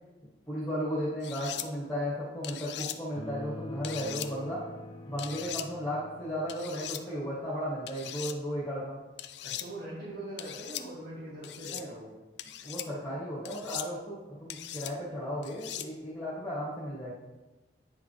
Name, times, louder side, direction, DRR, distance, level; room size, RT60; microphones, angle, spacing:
voice 1, 0.5-4.6 5.1-9.0 11.6-11.9 12.6-17.1, equal, 10° left, -8 dB, 1.9 m, -35 dB
sound 1, 1.2-1.7 2.4-3.0 3.8-4.3 5.2-5.7 6.5-7.0 7.9-8.4 9.2-9.7 10.4-10.8 11.4-11.8 12.4-12.9 13.4-13.9 14.5-14.9 15.4-15.9, left 12 dB, 70° left, 0.4 m, -39 dB
sound 2, 3.2-6.7, left 1 dB, 25° left, 1.1 m, -44 dB
voice 2, 9.4-12.1, right 1 dB, 65° right, -8 dB, 1.8 m, -42 dB
9.3 x 5.1 x 3.4 m, 1.1 s
head